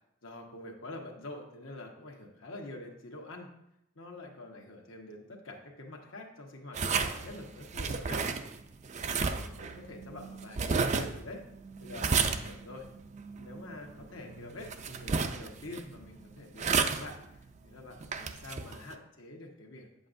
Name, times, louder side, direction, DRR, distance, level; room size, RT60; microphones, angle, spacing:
voice 1, 0.2-3.5 3.9-8.3 9.0-11.4 11.8-12.9 13.3-20.1, left 2 dB, 75° left, 1 dB, 1.3 m, -46 dB
sound 1, 6.7-18.9, right 5 dB, 35° right, 0.4 m, -33 dB
8.8 x 7.8 x 2.6 m, 0.81 s
head